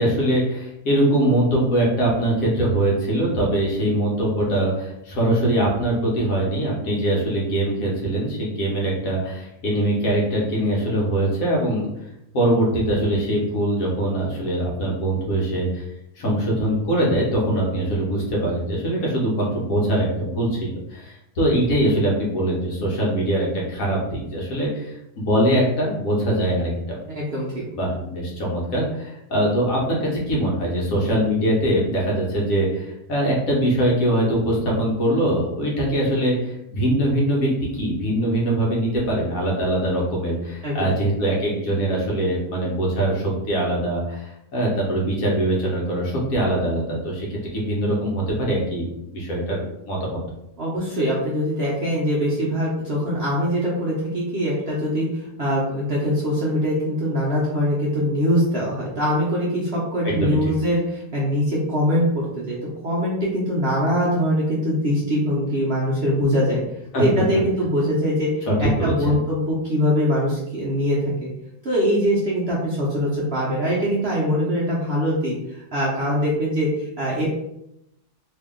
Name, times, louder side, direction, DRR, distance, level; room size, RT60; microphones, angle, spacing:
voice 1, 0.0-11.9 12.3-15.9 16.2-27.0 27.7-50.2 60.0-60.4 66.9-67.0 68.5-69.2, right 1 dB, 60° left, -3 dB, 1.3 m, -22 dB
voice 2, 27.1-27.6 40.6-40.9 50.6-62.6 62.8-66.6 67.0-71.3 71.6-77.3, equal, 50° right, -6 dB, 0.8 m, -22 dB
3.0 x 2.7 x 3.6 m, 0.83 s
omnidirectional pair, 1.7 m